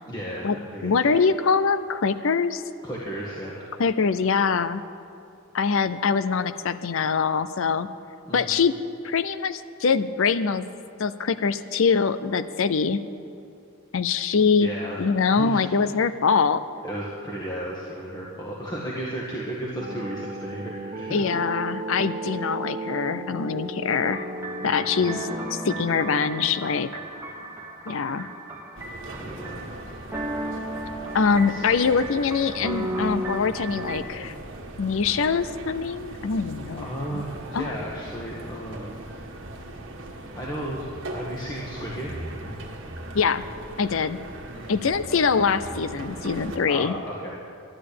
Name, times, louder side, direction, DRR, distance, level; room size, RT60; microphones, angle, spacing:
voice 1, 0.0-1.1 2.8-3.7 8.3-8.6 14.4-15.0 15.3-15.6 16.8-21.4 24.6-25.0 29.1-29.6 31.5-31.7 36.7-39.2 40.3-40.9 41.1-42.1 44.5-44.8 46.7-47.4, right 1 dB, 20° left, -5 dB, 1.5 m, -34 dB
voice 2, 0.8-2.6 3.8-4.8 5.5-7.9 8.3-8.7 9.0-10.6 11.0-13.0 13.9-14.7 15.0-16.6 21.1-24.2 24.6-26.9 27.9-28.3 31.1-34.3 34.8-37.2 37.5-37.7 43.1-43.4 43.8-44.2 44.7-46.9, left 5 dB, 65° left, 13 dB, 0.5 m, -23 dB
sound 1, 19.8-26.2, right 2 dB, 30° right, 1.1 m, -35 dB
sound 2, 24.0-34.0, right 1 dB, 10° right, 1.3 m, -35 dB
sound 3, 28.7-46.6, right 1 dB, 60° right, 1.4 m, -39 dB
12.0 x 11.0 x 8.5 m, 2.7 s
head